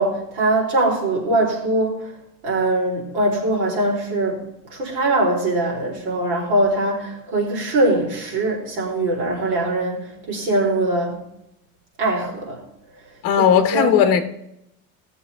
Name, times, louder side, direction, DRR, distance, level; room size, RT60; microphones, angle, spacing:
voice 1, 0.0-2.1 2.4-4.4 4.7-11.2 12.0-12.6 13.4-13.9, right 2 dB, 80° right, -2 dB, 4.6 m, -22 dB
voice 2, 13.2-14.2, left 8 dB, 40° left, 7 dB, 1.1 m, -16 dB
17.0 x 7.1 x 3.6 m, 0.82 s
cardioid pair, 175°, 37 cm